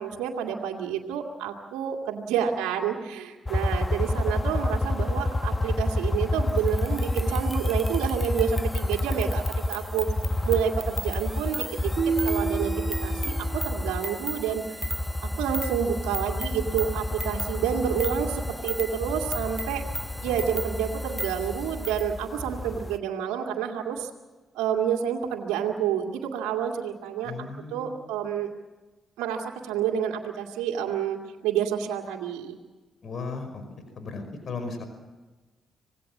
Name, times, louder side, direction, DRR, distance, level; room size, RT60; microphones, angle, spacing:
voice 1, 0.0-9.4 9.7-10.1 10.4-12.7 13.0-13.3 13.6-14.8 15.2-19.8 20.2-24.1 24.5-28.5 29.2-32.6, right 8 dB, 80° right, 1 dB, 2.2 m, -29 dB
sound 1, 3.4-23.0, left 2 dB, 30° left, 1.4 m, -29 dB
sound 2, 6.5-22.1, equal, 5° right, 0.9 m, -38 dB
sound 3, 12.0-14.1, right 5 dB, 60° right, 2.4 m, -30 dB
voice 2, 27.2-28.0 33.0-33.6 34.0-34.8, left 4 dB, 55° left, 7 dB, 5.2 m, -36 dB
26.0 x 19.0 x 7.3 m, 1.2 s
hypercardioid pair, 45°, 0 cm